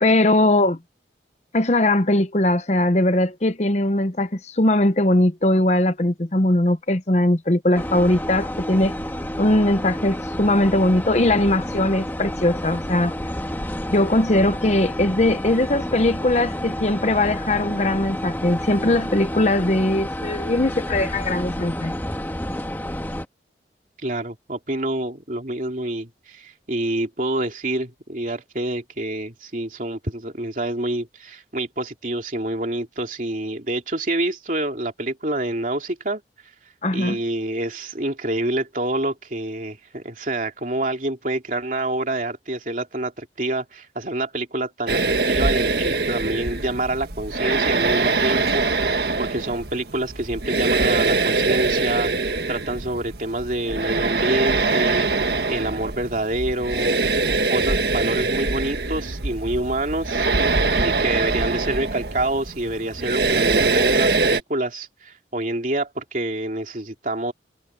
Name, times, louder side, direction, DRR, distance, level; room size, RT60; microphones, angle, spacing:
voice 1, 0.0-0.8 1.5-8.9 9.4-13.1 13.9-21.9 36.8-37.2, left 1 dB, 40° left, 0.9 m, -20 dB
sound 1, 7.7-23.2, equal, 10° left, 1.5 m, -30 dB
voice 2, 24.0-36.2 36.9-55.1 55.5-57.0 57.5-67.3, right 1 dB, 45° right, 3.0 m, -27 dB
sound 2, 44.9-64.4, right 3 dB, 65° right, 1.6 m, -23 dB
head